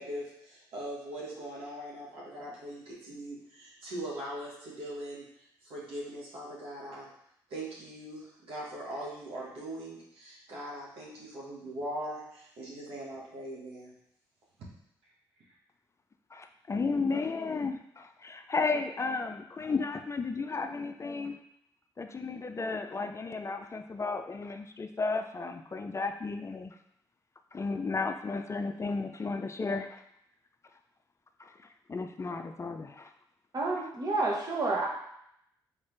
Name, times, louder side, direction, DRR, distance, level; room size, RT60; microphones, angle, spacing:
voice 1, 0.0-7.1 7.5-13.9, right 1 dB, 75° right, -5 dB, 1.5 m, -41 dB
voice 2, 16.3-21.4 22.0-26.8 27.5-30.0 31.4-31.6 31.9-33.1, left 4 dB, 30° left, 7 dB, 0.4 m, -33 dB
voice 3, 33.5-34.9, right 3 dB, 45° right, -2 dB, 1.4 m, -29 dB
3.9 x 3.9 x 3.3 m, 0.75 s
supercardioid pair, 50°, 9 cm